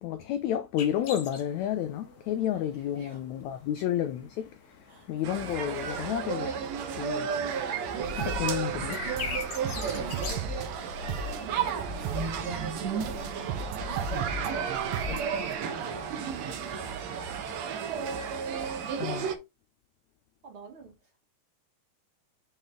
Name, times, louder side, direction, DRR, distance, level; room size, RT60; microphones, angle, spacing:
voice 1, 0.0-4.6 5.1-6.5 7.0-7.3 8.1-9.0 15.1-15.2 19.0-19.3, left 11 dB, 90° left, 1.6 m, -31 dB
sound 1, 0.8-13.4, left 5 dB, 55° left, 2.0 m, -45 dB
voice 2, 2.5-3.9 4.9-5.2 9.9-14.8 15.2-16.3 16.6-18.2 20.4-21.2, right 2 dB, 45° right, 2.0 m, -49 dB
sound 2, 5.2-19.4, right 7 dB, 65° right, 1.8 m, -33 dB
sound 3, 8.0-15.6, right 2 dB, 85° right, 2.8 m, -37 dB
6.9 x 4.3 x 3.7 m
omnidirectional pair, 4.0 m